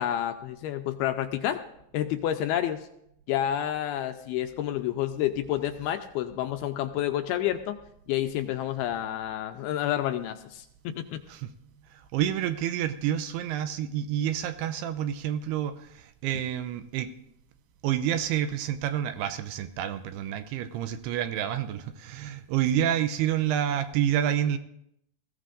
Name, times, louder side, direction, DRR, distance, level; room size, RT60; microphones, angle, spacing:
voice 1, 0.0-1.6 1.9-2.9 3.3-7.8 8.1-11.2, left 11 dB, 80° left, 7 dB, 2.4 m, -29 dB
voice 2, 11.9-17.1 17.8-24.6, right 10 dB, 80° right, 10 dB, 2.5 m, -28 dB
20.5 x 15.0 x 2.5 m, 0.76 s
omnidirectional pair, 4.9 m